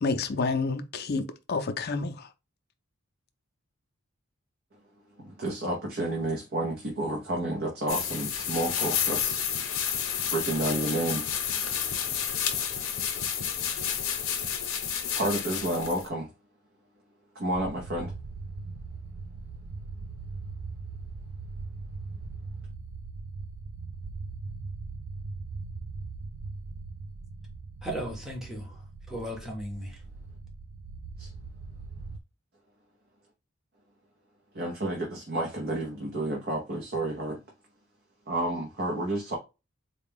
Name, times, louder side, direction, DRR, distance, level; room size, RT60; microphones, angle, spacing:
voice 1, 0.0-2.3, left 3 dB, 50° left, 0.5 m, -29 dB
voice 2, 5.2-9.4 10.2-11.3 15.1-16.3 17.3-18.1 31.2-31.3 34.5-37.4 38.3-39.3, right 1 dB, 50° right, 0.8 m, -30 dB
sound 1, 7.9-16.1, left 8 dB, 80° left, 0.7 m, -30 dB
sound 2, 17.5-32.2, right 3 dB, 85° right, 0.4 m, -40 dB
voice 3, 27.8-30.0, equal, ahead, 0.9 m, -36 dB
3.9 x 2.2 x 3.5 m
head